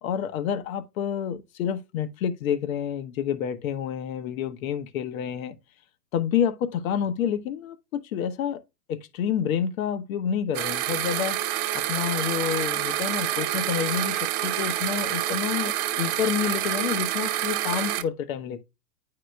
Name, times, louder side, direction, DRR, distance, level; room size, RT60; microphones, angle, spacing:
voice 1, 0.0-5.6 6.1-8.6 8.9-11.4 11.7-18.6, left 8 dB, 65° left, 1.0 m, -28 dB
sound 1, 10.5-18.0, right 13 dB, 45° right, 1.1 m, -27 dB
9.2 x 4.9 x 2.2 m
hypercardioid pair, 110°, 46 cm